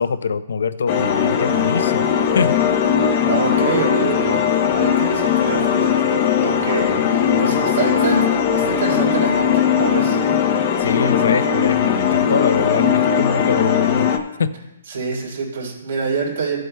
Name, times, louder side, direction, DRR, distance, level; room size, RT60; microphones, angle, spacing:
voice 1, 0.0-2.6 7.0-7.1 10.8-14.1 14.4-14.5, left 5 dB, 75° left, 13 dB, 0.6 m, -23 dB
sound 1, 0.9-14.2, left 7 dB, 25° left, 0.6 m, -18 dB
voice 2, 3.0-8.3 8.5-10.2 14.9-16.6, right 4 dB, 55° right, -2 dB, 3.4 m, -26 dB
16.0 x 7.7 x 2.2 m, 0.95 s
hypercardioid pair, 175°, 0 cm